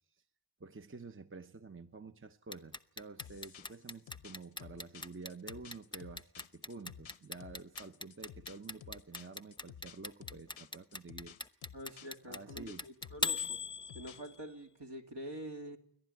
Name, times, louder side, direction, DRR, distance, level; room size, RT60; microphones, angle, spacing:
voice 1, 0.6-11.4 12.2-12.9, right 4 dB, 25° right, 9 dB, 0.8 m, -49 dB
Clock, 2.5-14.5, left 3 dB, 10° left, 0.8 m, -39 dB
sound 1, 3.2-14.4, left 9 dB, 90° left, 0.7 m, -54 dB
voice 2, 11.7-13.6 13.9-15.8, equal, 60° right, 3 dB, 2.6 m, -46 dB
29.0 x 11.5 x 9.3 m, 0.76 s
wide cardioid pair, 60°, 46 cm